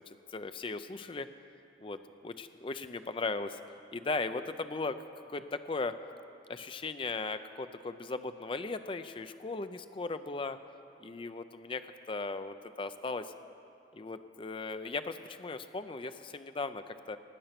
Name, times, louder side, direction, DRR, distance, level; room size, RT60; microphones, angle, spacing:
voice 1, 0.0-1.3 1.8-3.6 3.9-5.0 5.3-6.0 6.5-10.6 11.0-11.8 12.1-13.3 13.9-17.2, left 3 dB, 30° left, 10 dB, 0.4 m, -37 dB
17.0 x 9.1 x 5.9 m, 2.7 s
head